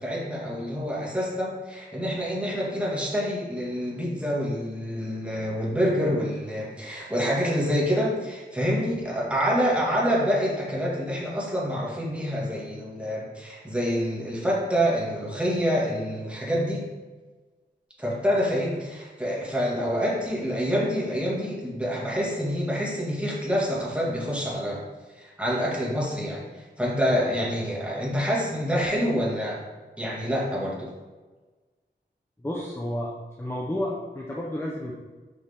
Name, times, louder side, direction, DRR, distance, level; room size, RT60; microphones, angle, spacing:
voice 1, 0.0-16.9 18.0-24.8 25.2-29.6 30.0-30.9, equal, 5° right, -5 dB, 2.4 m, -27 dB
voice 2, 32.4-33.1 33.4-34.9, left 1 dB, 15° left, -3 dB, 1.0 m, -31 dB
6.8 x 5.7 x 3.8 m, 1.3 s
wide cardioid pair, 60°, 19 cm